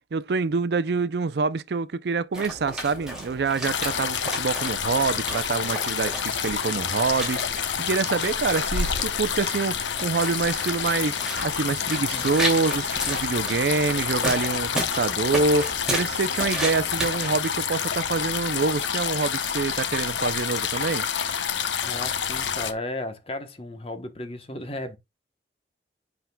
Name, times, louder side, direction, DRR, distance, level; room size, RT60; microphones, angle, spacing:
voice 1, 0.1-21.1, right 4 dB, 65° right, 0.4 m, -26 dB
sound 1, 2.3-17.3, right 1 dB, 5° right, 2.4 m, -34 dB
sound 2, 3.6-22.7, left 7 dB, 85° left, 0.8 m, -28 dB
voice 2, 21.8-25.0, left 1 dB, 30° left, 1.0 m, -34 dB
7.8 x 5.8 x 2.2 m
head